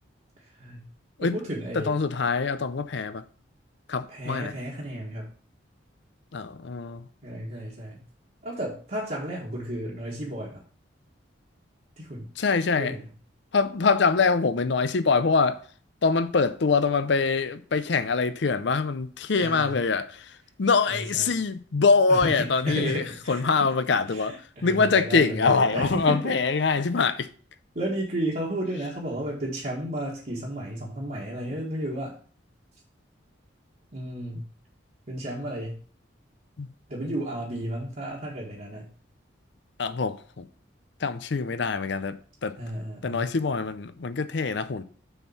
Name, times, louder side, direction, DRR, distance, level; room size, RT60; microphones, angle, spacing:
voice 1, 0.4-0.9 1.2-2.0 4.1-5.3 7.2-8.0 8.4-10.6 12.0-12.3 12.8-13.1 19.3-19.7 20.9-21.3 22.1-23.7 24.1-26.4 27.7-32.1 33.9-34.4 35.1-35.8 36.9-38.9 42.6-43.3, right 1 dB, 45° right, 1.6 m, -33 dB
voice 2, 1.7-3.2 3.9-4.5 6.3-7.0 12.4-13.0 13.5-15.6 16.0-20.3 20.6-27.3 36.6-36.7 39.8-40.4 41.0-42.6 43.0-44.8, left 4 dB, 65° left, 0.5 m, -24 dB
6.7 x 4.4 x 5.9 m
head